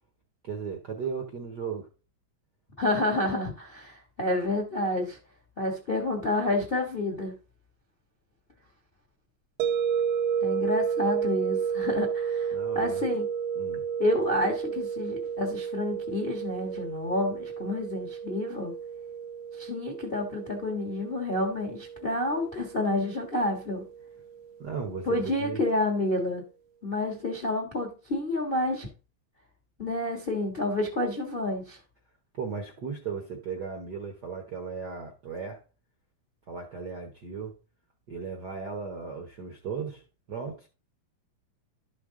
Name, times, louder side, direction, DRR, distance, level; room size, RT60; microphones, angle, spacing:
voice 1, 0.4-1.9 12.5-13.1 13.5-13.8 24.6-25.6 32.3-35.6 36.5-37.5 38.1-40.0 40.3-40.7, right 5 dB, 60° right, 1.0 m, -36 dB
voice 2, 2.8-5.2 5.6-7.3 10.4-13.3 14.0-18.7 19.6-23.8 25.1-26.4 26.8-28.9 29.8-31.8, left 1 dB, 45° left, 0.7 m, -29 dB
sound 1, 9.6-24.5, right 7 dB, 80° right, 2.0 m, -32 dB
12.0 x 5.1 x 3.7 m
omnidirectional pair, 3.4 m